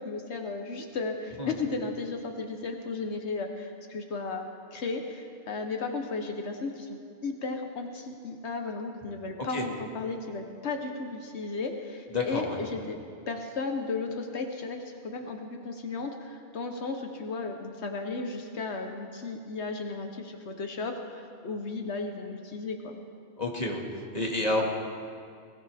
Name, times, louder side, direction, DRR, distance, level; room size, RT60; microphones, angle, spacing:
voice 1, 0.0-4.5 4.7-13.0 13.3-23.0, left 3 dB, 75° left, 4 dB, 1.3 m, -35 dB
voice 2, 12.1-12.6 23.4-24.6, left 2 dB, 35° left, -1 dB, 2.1 m, -29 dB
20.5 x 18.0 x 3.5 m, 2.3 s
omnidirectional pair, 1.1 m